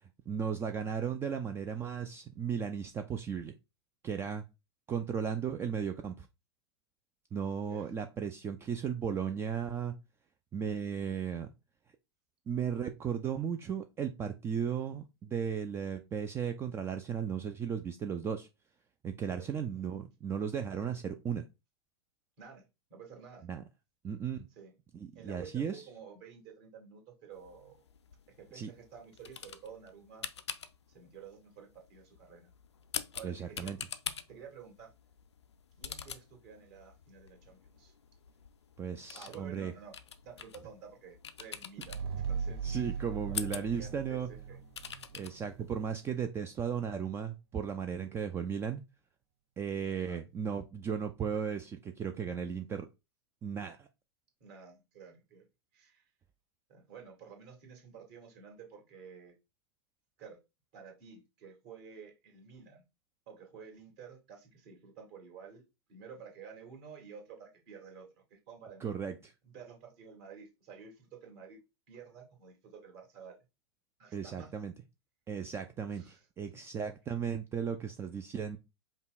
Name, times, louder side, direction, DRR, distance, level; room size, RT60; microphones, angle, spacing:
voice 1, 0.3-3.5 4.0-4.4 4.9-6.3 7.3-9.9 10.5-11.5 12.5-18.5 19.0-21.4 23.5-23.6 24.0-24.5 24.9-25.8 28.5-28.7 33.2-33.8 38.8-39.7 42.6-44.3 45.1-48.8 49.6-52.9 53.4-53.9 68.8-69.3 74.1-74.7 75.3-78.6, right 7 dB, 20° right, 0.4 m, -35 dB
voice 2, 7.6-7.9 19.3-19.6 22.4-23.5 24.5-24.7 25.1-27.8 28.4-30.3 30.9-32.5 33.1-33.7 34.3-34.9 35.8-37.9 39.1-40.0 40.2-44.6 49.8-50.2 54.4-55.5 55.7-56.1 56.7-59.3 60.2-60.4 60.7-62.8 63.3-65.6 65.9-68.9 69.4-71.6 71.9-73.4 74.0-74.5 75.9-76.3, right 6 dB, 45° right, 1.9 m, -51 dB
sound 1, 27.3-46.1, left 7 dB, 80° left, 0.4 m, -46 dB
sound 2, 41.8-45.2, right 6 dB, 65° right, 0.9 m, -38 dB
5.2 x 2.3 x 4.0 m
figure-of-eight pair, 100°, 14 cm